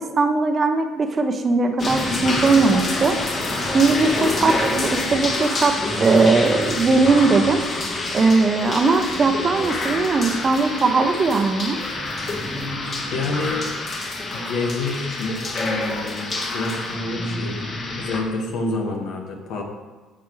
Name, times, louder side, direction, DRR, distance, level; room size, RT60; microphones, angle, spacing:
voice 1, 0.0-3.2 3.7-7.6 8.1-11.8, right 4 dB, 35° right, 6 dB, 0.8 m, -19 dB
sound 1, 1.8-18.2, left 2 dB, 45° left, 2.4 m, -27 dB
voice 2, 13.1-13.7 14.3-19.6, left 3 dB, 75° left, 1 dB, 1.8 m, -28 dB
15.5 x 5.1 x 3.3 m, 1.3 s
cardioid pair, 95°, 0 cm